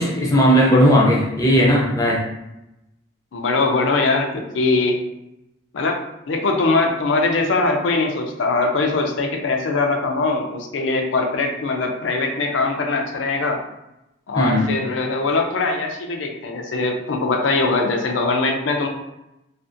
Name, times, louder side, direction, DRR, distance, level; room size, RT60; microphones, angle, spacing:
voice 1, 0.0-2.3 14.3-14.7, equal, 20° left, -3 dB, 0.5 m, -16 dB
voice 2, 3.3-5.0 5.7-6.0 6.3-13.6 14.3-18.9, left 3 dB, 80° left, 3 dB, 0.5 m, -21 dB
2.4 x 2.4 x 2.5 m, 0.90 s
head